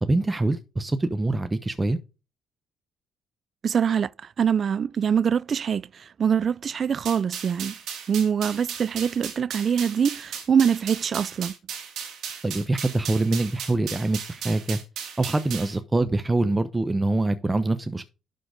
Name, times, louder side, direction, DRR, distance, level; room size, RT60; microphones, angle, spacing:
voice 1, 0.0-2.0 12.4-14.8 15.2-18.1, right 2 dB, 20° right, 0.8 m, -24 dB
voice 2, 3.6-7.8 8.1-11.5, right 7 dB, 50° right, 0.3 m, -24 dB
sound 1, 7.1-15.8, right 8 dB, 75° right, 2.3 m, -36 dB
11.5 x 3.9 x 5.0 m
supercardioid pair, 60°, 0 cm